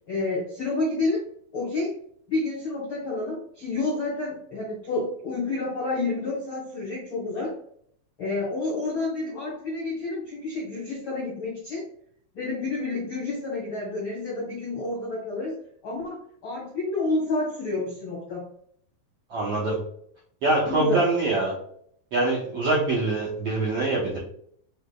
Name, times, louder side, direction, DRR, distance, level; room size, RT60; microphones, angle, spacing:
voice 1, 0.1-1.2 1.5-1.9 2.3-7.6 8.2-11.9 12.3-15.5 15.8-18.5 20.6-21.0, left 2 dB, 65° left, -5 dB, 1.2 m, -29 dB
voice 2, 19.3-19.8 20.4-21.5 22.1-24.2, right 2 dB, 75° right, -6 dB, 1.4 m, -24 dB
6.7 x 2.8 x 2.2 m, 0.64 s
omnidirectional pair, 4.2 m